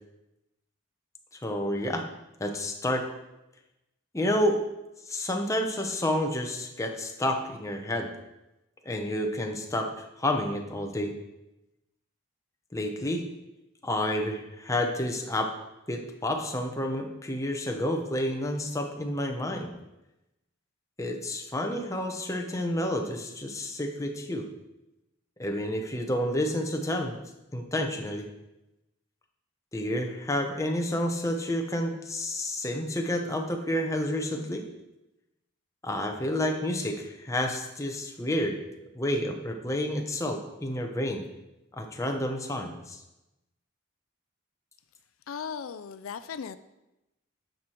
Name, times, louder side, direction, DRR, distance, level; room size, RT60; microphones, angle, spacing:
voice 1, 1.4-2.0 2.4-3.1 4.1-4.6 5.1-8.1 8.9-9.9 10.2-11.1 12.7-13.2 13.8-15.5 15.9-19.7 21.0-24.5 25.4-27.2 27.5-28.2 29.7-34.6 35.8-38.6 38.9-41.2 41.7-43.0, left 1 dB, 15° left, 3 dB, 0.9 m, -29 dB
voice 2, 45.3-46.6, left 6 dB, 90° left, 13 dB, 0.4 m, -37 dB
9.3 x 6.5 x 4.5 m, 0.94 s
head